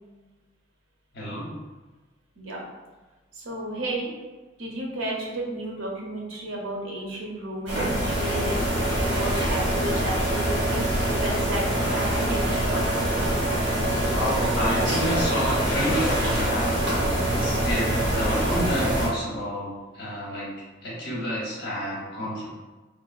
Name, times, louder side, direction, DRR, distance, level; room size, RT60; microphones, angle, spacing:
voice 1, 1.1-1.6 14.1-19.7 19.9-20.5 20.8-22.5, equal, 55° left, -5 dB, 0.9 m, -29 dB
voice 2, 3.3-4.1 4.6-8.6 9.0-12.6, right 1 dB, 85° right, -2 dB, 0.7 m, -33 dB
sound 1, 7.7-19.1, right 1 dB, 65° right, 1.0 m, -24 dB
3.2 x 2.2 x 2.4 m, 1.2 s
head